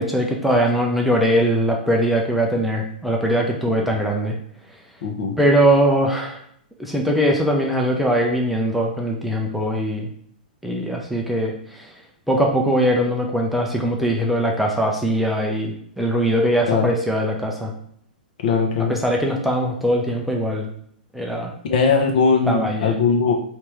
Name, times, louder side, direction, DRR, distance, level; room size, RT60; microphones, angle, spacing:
voice 1, 0.0-4.4 5.4-6.4 6.8-10.1 10.6-11.9 12.3-17.7 18.9-20.7 21.1-21.5 22.5-23.0, equal, ahead, -1 dB, 0.6 m, -21 dB
voice 2, 5.0-5.4 16.7-16.9 18.4-19.0 21.7-23.3, left 5 dB, 55° left, 1 dB, 0.9 m, -19 dB
3.4 x 2.9 x 3.3 m, 0.65 s
figure-of-eight pair, 110°, 5 cm